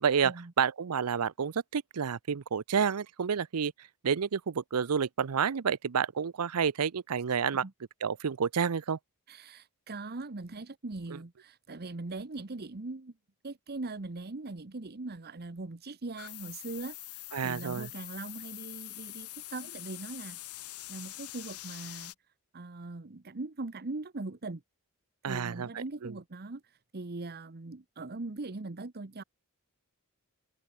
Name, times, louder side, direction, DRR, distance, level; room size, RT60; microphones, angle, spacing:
voice 1, 0.0-3.7 4.0-7.6 8.0-9.0 17.3-17.9 25.2-26.1, right 7 dB, 85° right, 0.6 m, -29 dB
voice 2, 9.3-13.1 13.4-20.4 20.9-22.1 22.5-24.6 25.3-29.2, right 3 dB, 45° right, 1.0 m, -41 dB
sound 1, 16.2-22.1, left 16 dB, 85° left, 3.2 m, -44 dB
head